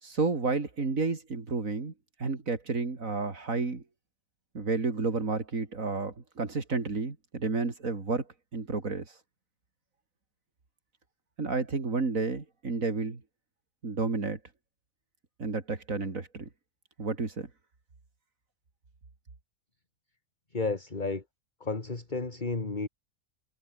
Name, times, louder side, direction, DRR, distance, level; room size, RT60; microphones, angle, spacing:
voice 1, 0.0-1.9 2.2-3.8 4.5-9.2 11.4-13.2 13.8-14.4 15.4-16.5 17.0-17.5, right 4 dB, 85° right, 3.4 m, -31 dB
voice 2, 20.5-21.2 21.6-22.9, left 3 dB, 35° left, 2.4 m, -32 dB
omnidirectional pair, 1.4 m